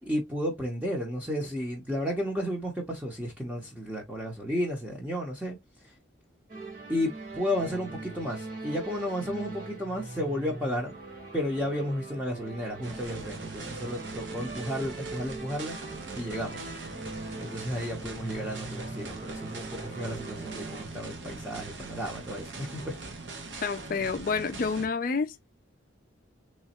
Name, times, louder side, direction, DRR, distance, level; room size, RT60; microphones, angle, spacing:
voice 1, 0.0-5.9 6.9-11.0 11.3-15.8 16.1-16.7 17.4-22.9, equal, 10° right, 0.7 m, -33 dB
sound 1, 6.5-20.8, right 2 dB, 45° right, 1.4 m, -41 dB
sound 2, 12.8-24.9, right 3 dB, 65° right, 0.9 m, -42 dB
voice 2, 23.6-25.4, left 5 dB, 45° left, 0.4 m, -29 dB
3.3 x 3.1 x 2.9 m
head